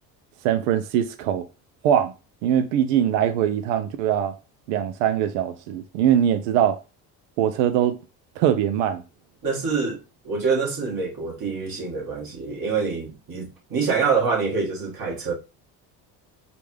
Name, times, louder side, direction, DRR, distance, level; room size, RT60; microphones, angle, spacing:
voice 1, 0.4-1.5 1.8-2.1 2.4-4.3 4.7-6.8 7.4-8.0 8.4-9.0, right 10 dB, 90° right, 0.6 m, -22 dB
voice 2, 9.4-10.0 10.2-15.3, right 5 dB, 50° right, 1.9 m, -25 dB
5.0 x 2.4 x 3.2 m
supercardioid pair, 70°, 46 cm